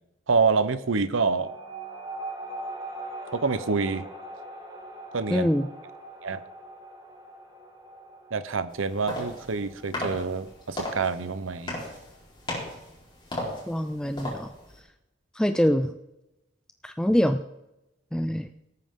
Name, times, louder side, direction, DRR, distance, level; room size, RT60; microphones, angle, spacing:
voice 1, 0.3-1.6 3.3-4.1 5.1-5.5 6.2-6.4 8.3-11.7, right 4 dB, 85° right, 15 dB, 0.7 m, -26 dB
sound 1, 1.2-12.1, right 1 dB, 20° right, 1.6 m, -41 dB
voice 2, 5.3-5.6 13.7-14.5 15.3-15.9 16.8-17.4 18.1-18.5, equal, 5° left, 8 dB, 0.4 m, -24 dB
sound 2, 8.7-14.8, left 1 dB, 25° left, 3.9 m, -36 dB
18.0 x 9.0 x 3.7 m, 0.91 s
head